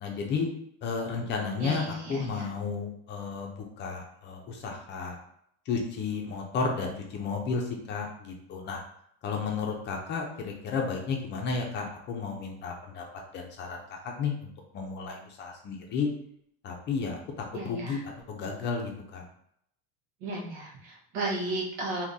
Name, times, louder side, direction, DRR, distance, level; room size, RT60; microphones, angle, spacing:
voice 1, 0.0-0.5 0.8-5.2 5.7-8.8 9.2-13.0 13.3-16.1 16.6-17.2 17.6-19.2, left 5 dB, 30° left, 1 dB, 0.5 m, -33 dB
voice 2, 1.6-2.5 17.5-18.0 20.2-22.0, right 2 dB, 90° right, -2 dB, 1.2 m, -34 dB
3.7 x 2.8 x 2.6 m, 0.70 s
cardioid pair, 160°, 36 cm